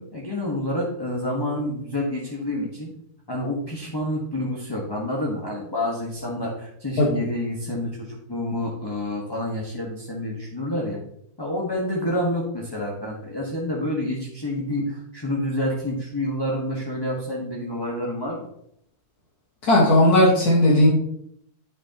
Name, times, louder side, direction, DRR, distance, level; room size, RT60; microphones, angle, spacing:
voice 1, 0.0-2.9 3.3-11.0 11.4-18.5, left 1 dB, 15° left, -3 dB, 1.2 m, -28 dB
voice 2, 19.6-20.9, left 1 dB, 75° left, -3 dB, 2.0 m, -16 dB
9.8 x 6.1 x 2.9 m, 0.71 s
omnidirectional pair, 1.6 m